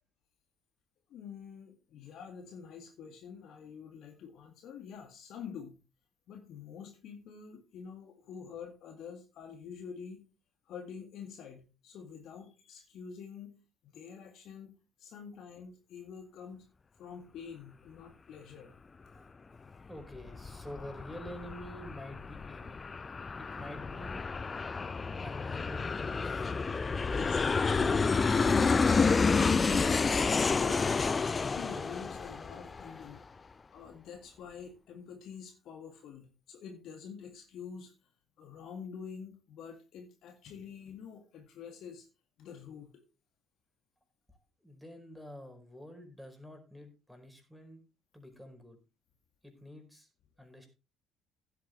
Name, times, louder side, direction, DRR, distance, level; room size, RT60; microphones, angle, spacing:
voice 1, 1.1-5.8 6.3-10.2 10.7-16.7 17.0-18.8 27.1-28.1 29.3-31.0 31.6-33.2 33.7-37.9 38.4-42.1 42.4-42.9, left 6 dB, 55° left, 4 dB, 2.0 m, -47 dB
Aircraft, 19.9-33.2, left 4 dB, 30° left, 0.6 m, -30 dB
voice 2, 19.9-22.8 23.4-24.2 25.2-26.6 44.6-47.8 48.1-48.8 49.4-50.1 50.4-50.7, left 1 dB, ahead, 4 dB, 4.9 m, -48 dB
16.0 x 8.3 x 3.2 m, 0.29 s
figure-of-eight pair, 50°, 0 cm